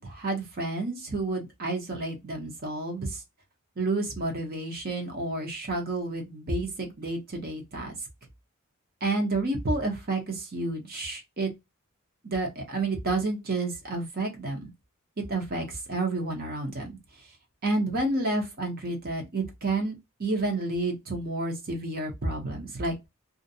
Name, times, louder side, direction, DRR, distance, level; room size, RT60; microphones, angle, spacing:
voice 1, 0.0-3.2 3.8-7.9 9.0-11.5 12.2-14.7 15.2-17.0 17.6-22.9, right 2 dB, 45° right, 0.8 m, -30 dB
2.5 x 2.1 x 2.6 m
head